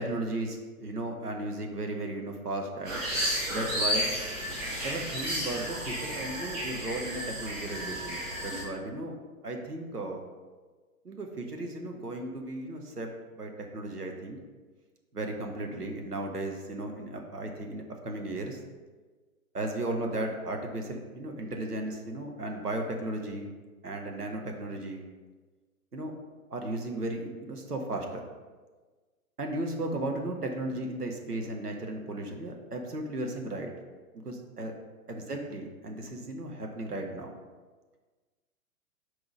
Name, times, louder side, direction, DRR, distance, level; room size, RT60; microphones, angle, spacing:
voice 1, 0.0-3.0 3.5-4.1 4.8-9.2 9.4-10.3 11.0-13.1 13.4-14.4 15.1-18.6 19.5-23.5 23.8-25.0 25.9-26.1 26.5-28.3 29.4-33.7 34.2-34.7 35.1-37.3, right 2 dB, 85° right, 2 dB, 1.0 m, -35 dB
sound 1, 2.8-8.6, equal, 30° right, 1.7 m, -32 dB
4.7 x 4.2 x 4.9 m, 1.4 s
figure-of-eight pair, 120°, 45 cm